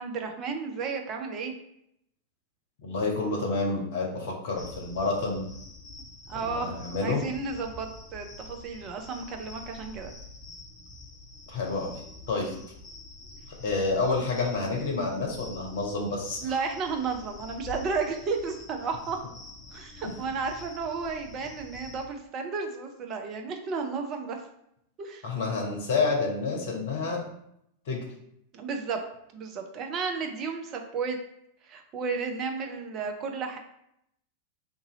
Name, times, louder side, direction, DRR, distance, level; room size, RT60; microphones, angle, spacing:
voice 1, 0.0-1.5 6.3-6.7 7.0-10.1 16.4-19.2 19.7-24.5 25.0-25.3 28.5-29.0 29.3-31.2 31.6-33.6, right 5 dB, 35° right, 4 dB, 0.5 m, -33 dB
voice 2, 2.8-5.4 6.3-7.2 11.5-11.9 12.3-12.5 13.6-16.4 25.2-27.2 27.9-28.0, left 3 dB, 55° left, 0 dB, 0.9 m, -29 dB
sound 1, 4.6-22.1, left 2 dB, 20° left, 0.5 m, -47 dB
2.6 x 2.6 x 3.9 m, 0.76 s
figure-of-eight pair, 90°, 0 cm